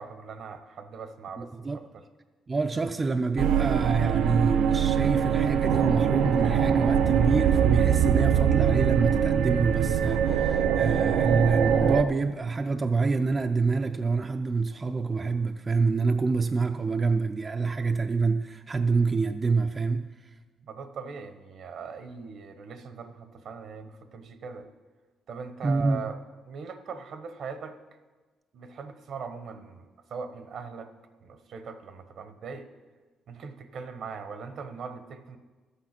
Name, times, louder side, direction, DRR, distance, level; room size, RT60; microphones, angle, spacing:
voice 1, 0.0-2.0 20.6-24.7 25.3-26.2 26.5-27.8 28.5-30.9 31.2-32.7 33.3-35.4, right 5 dB, 65° right, 9 dB, 1.0 m, -40 dB
voice 2, 1.4-1.8 2.5-20.0 25.6-26.0, right 4 dB, 30° right, 5 dB, 0.5 m, -26 dB
sound 1, 3.4-12.0, right 8 dB, 90° right, 0.6 m, -23 dB
13.0 x 8.5 x 5.9 m, 1.4 s
cardioid pair, 90°, 0 cm